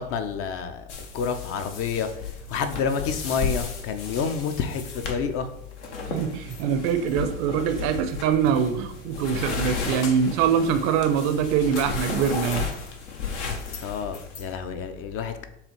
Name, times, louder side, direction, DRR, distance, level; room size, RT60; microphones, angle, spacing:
voice 1, 0.0-2.1 2.5-5.5 13.8-15.5, left 6 dB, 40° left, 0.5 m, -29 dB
sound 1, 0.9-14.5, left 5 dB, 70° left, 0.9 m, -34 dB
voice 2, 6.1-12.7, right 7 dB, 50° right, 0.5 m, -24 dB
6.8 x 2.4 x 3.0 m
hypercardioid pair, 80°, 36 cm